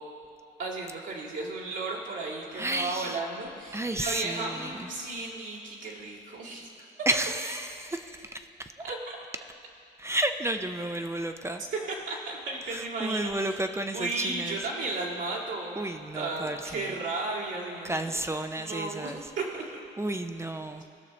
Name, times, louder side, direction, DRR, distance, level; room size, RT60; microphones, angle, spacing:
voice 1, 0.6-6.7 8.8-9.2 11.7-13.6 13.9-15.8 16.1-18.2 18.6-19.6, right 3 dB, 70° right, -5 dB, 2.3 m, -34 dB
voice 2, 2.5-3.2 3.7-4.9 7.1-8.7 10.0-11.6 12.7-14.6 15.8-17.0 17.8-19.3 20.0-20.8, right 1 dB, 15° right, 7 dB, 0.5 m, -32 dB
18.0 x 6.5 x 3.2 m, 2.5 s
cardioid pair, 90°, 20 cm